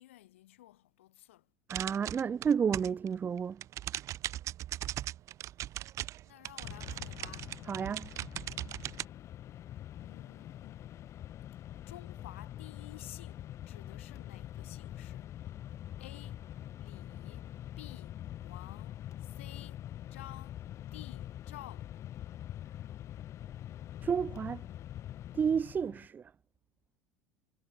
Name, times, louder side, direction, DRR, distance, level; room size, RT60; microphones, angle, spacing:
voice 1, 0.0-1.5 6.3-7.5 10.0-10.8 11.9-15.3 16.0-16.5 16.8-20.6 20.9-22.0, left 15 dB, 75° left, 4.6 m, -53 dB
voice 2, 1.7-3.6 7.7-8.1 24.0-24.6 25.3-26.2, right 7 dB, 25° right, 0.4 m, -31 dB
sound 1, 1.7-3.1 3.4-9.0, right 13 dB, 50° right, 1.9 m, -39 dB
Mechanisms, 6.6-26.1, left 12 dB, 45° left, 0.9 m, -45 dB
hypercardioid pair, 75°, 7 cm